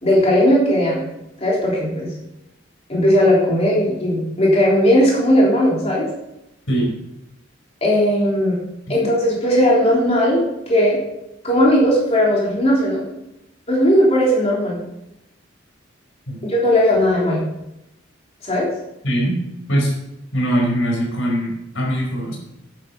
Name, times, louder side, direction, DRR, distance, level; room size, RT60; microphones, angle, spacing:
voice 1, 0.0-1.1 1.4-2.1 2.9-6.1 7.8-8.6 8.9-11.0 11.4-13.0 13.7-14.8 16.5-17.5 18.4-18.7, equal, 30° left, -5 dB, 3.5 m, -17 dB
voice 2, 19.0-19.9 20.3-22.4, equal, 90° left, 0 dB, 4.6 m, -21 dB
11.0 x 9.2 x 5.4 m, 0.88 s
head